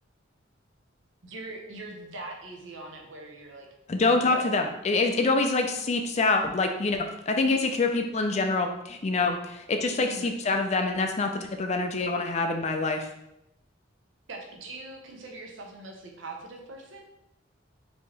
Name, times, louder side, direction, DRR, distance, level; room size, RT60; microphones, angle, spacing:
voice 1, 1.2-3.7 4.1-4.5 10.0-10.3 14.3-17.1, right 2 dB, 75° right, 1 dB, 0.8 m, -41 dB
voice 2, 3.9-13.1, left 3 dB, 35° left, 5 dB, 0.4 m, -26 dB
4.4 x 2.9 x 3.2 m, 0.83 s
head